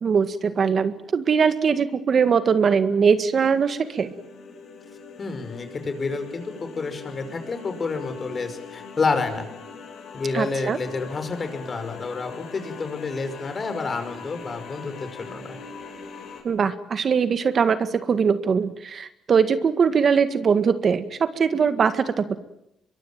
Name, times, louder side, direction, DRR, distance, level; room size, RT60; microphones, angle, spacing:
voice 1, 0.0-4.1 10.3-10.8 16.4-22.4, right 6 dB, 50° right, 11 dB, 1.8 m, -21 dB
sound 1, 3.1-16.4, left 4 dB, 65° left, 7.1 m, -41 dB
voice 2, 5.2-9.5 10.1-15.6, left 4 dB, 40° left, 9 dB, 5.5 m, -29 dB
23.5 x 23.0 x 9.1 m, 0.80 s
cardioid pair, 90°, 0 cm